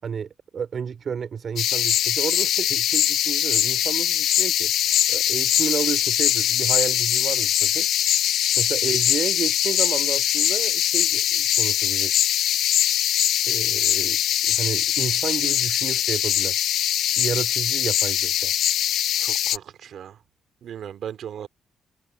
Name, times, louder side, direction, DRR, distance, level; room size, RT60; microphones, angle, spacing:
voice 1, 0.0-4.7 5.1-7.9 8.6-12.1 13.4-16.5 17.2-18.5, right 7 dB, 50° right, 5.0 m, -31 dB
sound 1, 1.6-19.6, left 11 dB, 80° left, 1.6 m, -22 dB
voice 2, 19.2-20.1 20.6-21.5, right 9 dB, 65° right, 3.2 m, -37 dB
cardioid pair, 90°, 0 cm